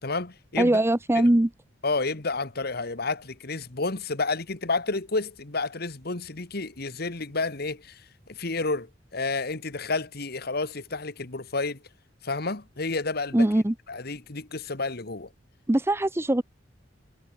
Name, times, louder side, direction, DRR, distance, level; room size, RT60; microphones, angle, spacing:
voice 1, 0.0-0.8 1.1-1.3 1.8-11.8 12.2-13.5 13.9-15.3, left 3 dB, 55° left, 1.8 m, -30 dB
voice 2, 0.6-1.5 13.3-13.7 15.7-16.4, right 1 dB, 15° right, 0.6 m, -21 dB
head